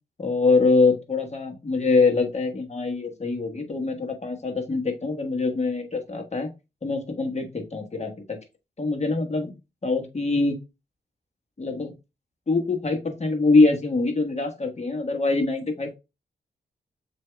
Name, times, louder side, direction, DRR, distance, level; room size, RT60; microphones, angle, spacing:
voice 1, 0.2-6.5 6.8-8.1 8.8-9.5 9.8-10.5 11.6-11.9 12.5-16.0, left 3 dB, 35° left, 4 dB, 1.3 m, -23 dB
7.4 x 2.7 x 2.3 m, 0.26 s
supercardioid pair, 45°, 18 cm